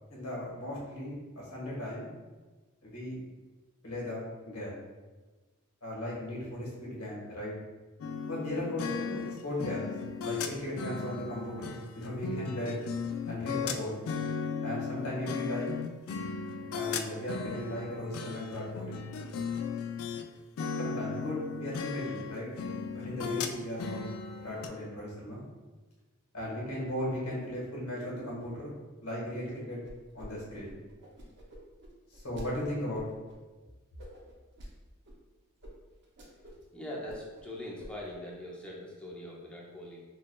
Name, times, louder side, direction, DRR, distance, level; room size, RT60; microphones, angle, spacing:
voice 1, 0.1-2.1 2.8-3.2 3.8-4.8 5.8-7.5 8.3-9.9 10.2-12.8 13.3-14.0 14.6-15.7 16.7-19.0 20.8-22.5 23.0-24.0 24.4-25.4 26.3-28.7 29.0-29.8 30.1-30.8 32.1-33.0, left 1 dB, 85° left, -5 dB, 1.3 m, -37 dB
sound 1, 8.0-20.3 20.6-24.7, left 5 dB, 65° left, 0.3 m, -36 dB
sound 2, 29.8-30.3 30.5-32.5 32.9-33.4 34.0-34.7 35.0-35.2 35.6-35.7 36.0-36.6 36.9-37.5 37.8-38.1, equal, 55° right, 0.7 m, -48 dB
voice 2, 36.7-40.0, left 1 dB, 5° left, -4 dB, 0.6 m, -42 dB
5.6 x 2.3 x 2.2 m, 1.2 s
head